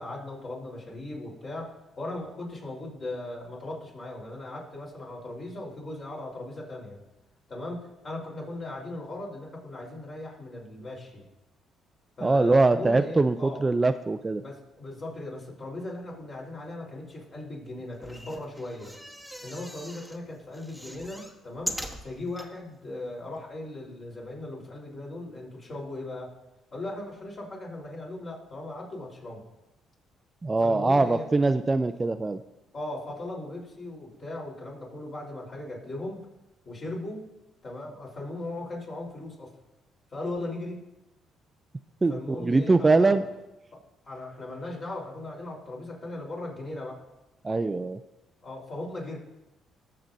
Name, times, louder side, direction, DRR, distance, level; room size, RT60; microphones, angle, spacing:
voice 1, 0.0-7.0 7.5-11.2 12.2-13.6 14.4-18.9 19.4-26.3 26.7-29.4 30.6-31.3 32.7-36.2 36.7-37.2 37.6-39.5 40.1-40.8 42.1-43.2 44.0-47.0 48.4-49.2, left 2 dB, 45° left, -3 dB, 3.6 m, -38 dB
voice 2, 12.2-14.4 30.4-32.4 42.0-43.2 47.4-48.0, right 3 dB, 25° right, 10 dB, 0.4 m, -23 dB
sound 1, 17.9-20.2 20.5-22.5 23.1-23.2 23.4-23.5, equal, 5° left, 1.2 m, -40 dB
19.5 x 6.8 x 2.6 m, 0.99 s
cardioid pair, 85°, 0 cm